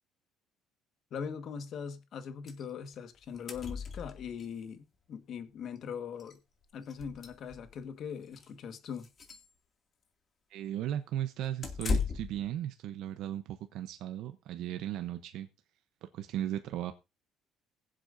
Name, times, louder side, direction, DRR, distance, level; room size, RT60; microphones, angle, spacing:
voice 1, 1.1-6.4 6.7-9.1, left 7 dB, 55° left, 1.6 m, -41 dB
sound 1, 2.5-2.6 2.9-3.0 3.2-4.5 5.7-5.8 6.2-6.3 6.8-7.8 8.3-8.5 8.9-9.5 11.6-12.4, left 4 dB, 35° left, 2.4 m, -36 dB
voice 2, 10.5-15.5 16.0-16.9, right 11 dB, 75° right, 0.8 m, -36 dB
21.0 x 7.7 x 2.7 m
cardioid pair, 115°, 0 cm